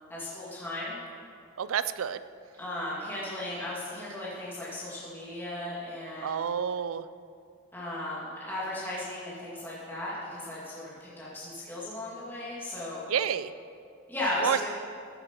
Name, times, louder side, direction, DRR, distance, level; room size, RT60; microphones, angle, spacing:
voice 1, 0.1-1.0 2.5-6.4 7.7-13.1 14.1-14.7, left 1 dB, 10° left, -8 dB, 2.1 m, -36 dB
voice 2, 1.6-2.2 6.2-7.1 13.1-13.5 14.4-14.7, right 8 dB, 80° right, 14 dB, 0.4 m, -29 dB
14.0 x 7.8 x 4.4 m, 2.4 s
head